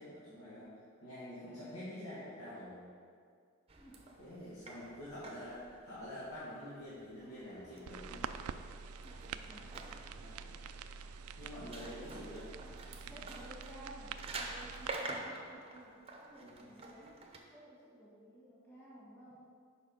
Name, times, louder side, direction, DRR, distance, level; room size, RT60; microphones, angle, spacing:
voice 1, 0.0-2.8 4.2-8.4 10.2-10.6 11.4-13.4 16.4-16.7, left 1 dB, 90° left, -11 dB, 2.0 m, -47 dB
voice 2, 3.7-4.1 8.8-10.0 11.8-12.5 13.1-19.4, right 1 dB, 10° left, -9 dB, 1.8 m, -55 dB
sound 1, 3.7-17.4, right 2 dB, 25° right, 0.7 m, -49 dB
sound 2, 7.2-13.2, equal, 45° left, 1.4 m, -64 dB
sound 3, 7.9-14.9, right 6 dB, 85° right, 0.3 m, -46 dB
6.6 x 5.4 x 5.6 m, 2.1 s
head